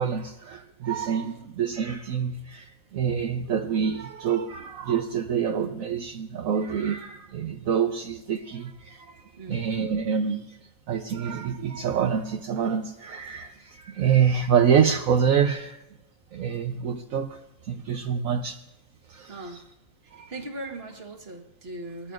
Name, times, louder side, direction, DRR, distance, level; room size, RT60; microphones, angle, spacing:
voice 1, 0.0-9.2 9.5-10.6 10.9-15.8 16.3-18.6 19.1-19.4 20.1-20.3, right 7 dB, 70° right, 4 dB, 1.1 m, -26 dB
voice 2, 9.1-9.9 19.3-19.6 20.0-22.1, right 2 dB, 45° right, 4 dB, 1.7 m, -40 dB
21.5 x 14.0 x 2.5 m, 0.95 s
omnidirectional pair, 1.5 m